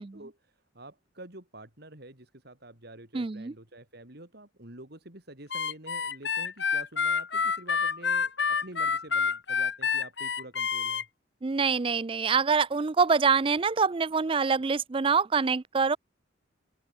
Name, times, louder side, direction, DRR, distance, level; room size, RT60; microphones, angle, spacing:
voice 1, 0.0-11.1, right 1 dB, 55° right, 3.8 m, -48 dB
voice 2, 3.1-3.5 11.4-16.0, right 5 dB, 25° right, 0.4 m, -25 dB
Harmonica, 5.5-11.0, left 6 dB, 60° left, 2.2 m, -28 dB
open air
head